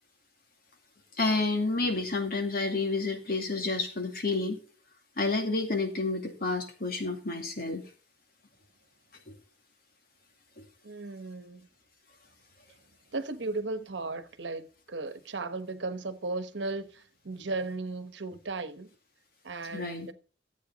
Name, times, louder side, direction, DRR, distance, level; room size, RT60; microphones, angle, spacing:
voice 1, 1.2-4.6 5.2-7.8 19.7-20.1, left 3 dB, 55° left, 2.3 m, -29 dB
voice 2, 10.8-11.7 13.1-18.9 19.4-20.1, right 3 dB, 85° right, 1.1 m, -36 dB
13.5 x 8.3 x 4.0 m
head